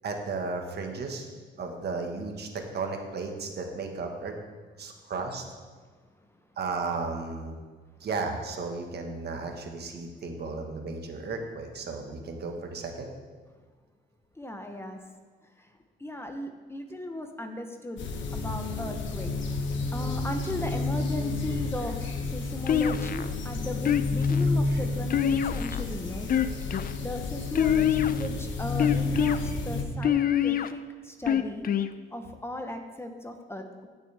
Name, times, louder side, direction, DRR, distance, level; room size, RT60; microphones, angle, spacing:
voice 1, 0.0-1.3 1.6-4.3 4.8-5.4 6.6-7.6 8.0-13.1 24.4-24.8, right 4 dB, 55° right, 3 dB, 1.5 m, -34 dB
voice 2, 14.4-15.0 16.0-18.0 18.3-19.3 19.9-26.3 26.7-31.7 32.1-33.9, left 1 dB, 10° left, 5 dB, 0.9 m, -36 dB
sound 1, 18.0-29.8, left 3 dB, 70° left, 1.2 m, -30 dB
sound 2, 22.7-23.3 23.9-24.4 25.1-25.8 26.2-26.9 27.6-28.3 28.8-29.4 30.0-30.7 31.3-31.9, left 9 dB, 45° left, 0.5 m, -25 dB
16.0 x 6.3 x 3.5 m, 1.4 s
cardioid pair, 90°, 20 cm